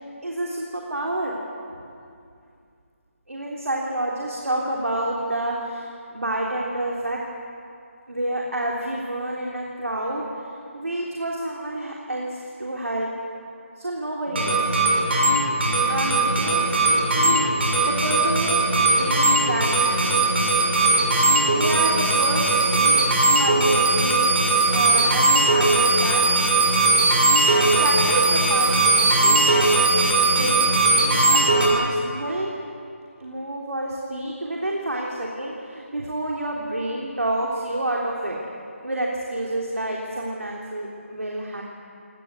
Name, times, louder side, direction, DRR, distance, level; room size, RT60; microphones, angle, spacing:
voice 1, 0.2-1.3 3.3-7.2 8.1-10.4 10.7-13.1 13.8-14.7 15.9-18.6 19.0-20.4 21.5-24.2 24.7-26.2 26.8-26.9 27.8-29.6 30.3-32.5 33.2-38.4 38.8-41.6, right 1 dB, 85° right, -2 dB, 3.4 m, -29 dB
sound 1, 14.3-31.7, right 2 dB, 50° right, 6.1 m, -19 dB
23.5 x 19.0 x 8.1 m, 2.4 s
figure-of-eight pair, 160°, 7 cm